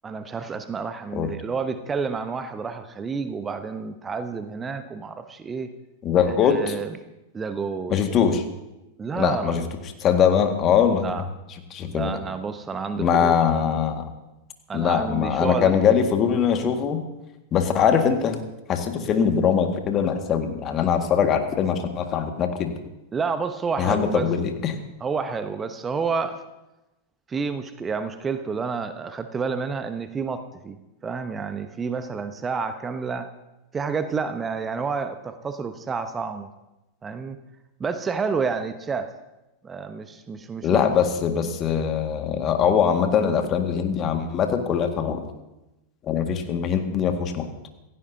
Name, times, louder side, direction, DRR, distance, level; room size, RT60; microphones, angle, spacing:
voice 1, 0.0-5.7 6.2-7.0 7.3-8.0 9.0-9.6 11.0-11.3 11.8-13.3 14.7-16.1 23.1-24.3 25.0-26.4 27.3-30.8 31.0-33.3 33.7-36.5 37.0-37.4 37.8-39.1 39.6-40.9, right 5 dB, 20° right, 10 dB, 0.9 m, -29 dB
voice 2, 6.0-6.7 7.9-8.4 9.1-9.6 10.0-11.1 11.7-12.1 13.0-14.0 14.7-17.0 17.5-18.4 18.7-22.7 23.8-24.8 40.6-45.2 46.1-47.5, left 7 dB, 30° left, 5 dB, 1.8 m, -22 dB
27.0 x 15.5 x 2.8 m, 0.98 s
figure-of-eight pair, 90°, 0 cm